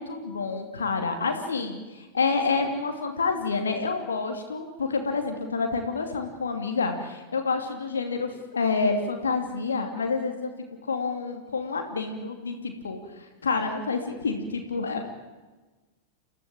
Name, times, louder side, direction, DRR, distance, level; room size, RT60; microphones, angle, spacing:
voice 1, 0.0-10.5 10.9-15.1, left 4 dB, 70° left, 4 dB, 2.8 m, -28 dB
30.0 x 15.5 x 8.8 m, 1.2 s
figure-of-eight pair, 90°, 0 cm